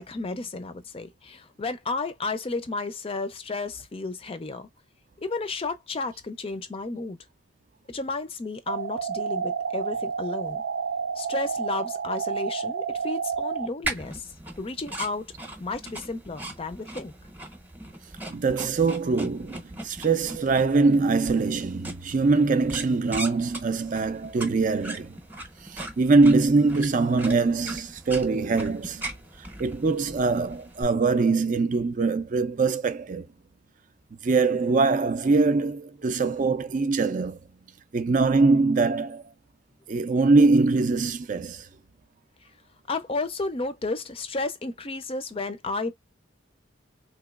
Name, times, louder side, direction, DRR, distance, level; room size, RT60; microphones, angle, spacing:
voice 1, 0.0-4.7 5.2-7.2 7.9-10.6 11.2-14.3 14.6-15.3 15.6-17.1 42.9-45.9, left 3 dB, 30° left, 0.4 m, -32 dB
sound 1, 8.7-13.7, right 6 dB, 75° right, 0.6 m, -30 dB
sound 2, 13.8-30.8, right 1 dB, 10° right, 0.8 m, -39 dB
voice 2, 18.3-25.2 25.6-29.1 29.6-33.3 34.2-37.4 37.9-39.2 39.9-41.7, right 3 dB, 40° right, 0.4 m, -23 dB
3.7 x 3.0 x 2.3 m
head